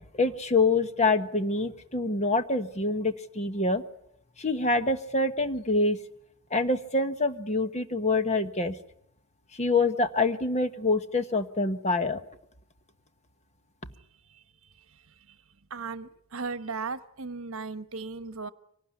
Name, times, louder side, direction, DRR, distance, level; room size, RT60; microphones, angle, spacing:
voice 1, 0.2-3.8 4.4-6.0 6.5-8.7 9.6-12.2, left 3 dB, 30° left, 9 dB, 1.3 m, -26 dB
voice 2, 15.7-18.5, right 4 dB, 65° right, 12 dB, 1.1 m, -36 dB
25.0 x 18.5 x 9.8 m, 0.73 s
head